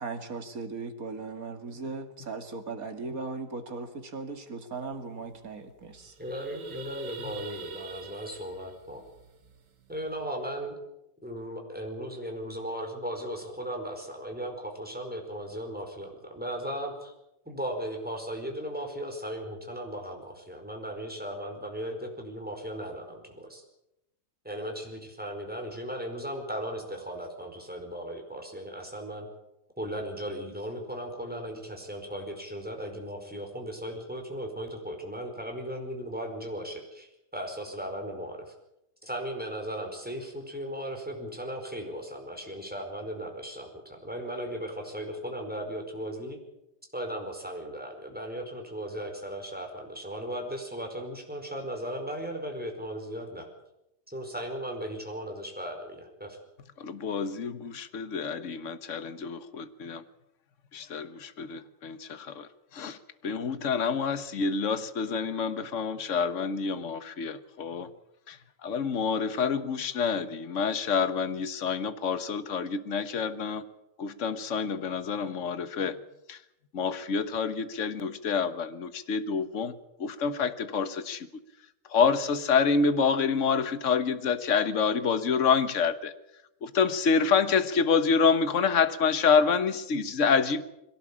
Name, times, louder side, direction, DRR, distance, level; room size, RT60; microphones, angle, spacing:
voice 1, 0.0-6.2, right 4 dB, 55° right, 6 dB, 2.7 m, -38 dB
sound 1, 4.9-5.0 5.3-5.5 5.8-10.2, right 3 dB, 80° right, 2.1 m, -45 dB
voice 2, 6.2-9.0 9.9-10.7 11.2-17.1 17.4-23.6 24.4-29.3 29.8-38.5 39.0-46.4 46.9-53.5 54.1-56.4, equal, 5° right, 2 dB, 4.8 m, -37 dB
voice 3, 56.8-60.0 60.7-63.0 63.2-67.9 68.3-73.6 74.0-76.0 76.3-76.4 76.7-81.3 81.9-86.1 86.6-90.6, left 5 dB, 50° left, 12 dB, 1.5 m, -27 dB
22.5 x 17.5 x 8.6 m, 0.87 s
omnidirectional pair, 1.9 m